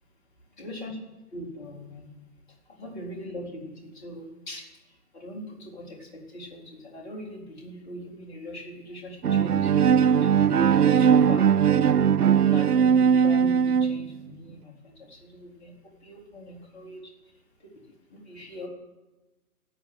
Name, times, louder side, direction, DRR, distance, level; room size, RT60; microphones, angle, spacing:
voice 1, 0.6-1.0 1.3-2.2 2.7-11.5 11.8-11.9 12.2-17.1 17.6-18.7, equal, 30° left, -1 dB, 4.0 m, -41 dB
Bowed string instrument, 9.2-14.2, right 8 dB, 80° right, 0.6 m, -20 dB
13.5 x 9.1 x 8.0 m, 1.1 s
figure-of-eight pair, 130°, 45 cm